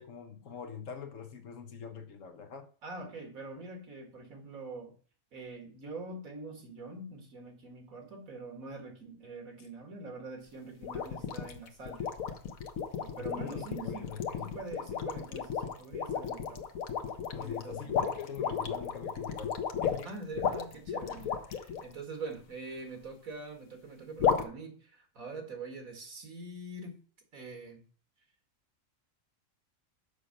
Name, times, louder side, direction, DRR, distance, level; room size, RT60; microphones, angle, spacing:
voice 1, 0.0-2.7 13.2-14.6 17.3-20.1, left 7 dB, 70° left, 1.3 m, -44 dB
voice 2, 2.8-4.9 5.3-12.1 13.0-14.1 14.4-16.6 17.4-18.1 20.0-27.0 27.3-27.8, right 3 dB, 90° right, 2.3 m, -44 dB
sound 1, 10.8-21.8 24.2-24.4, left 7 dB, 90° left, 1.3 m, -33 dB
6.8 x 5.5 x 6.4 m
omnidirectional pair, 1.4 m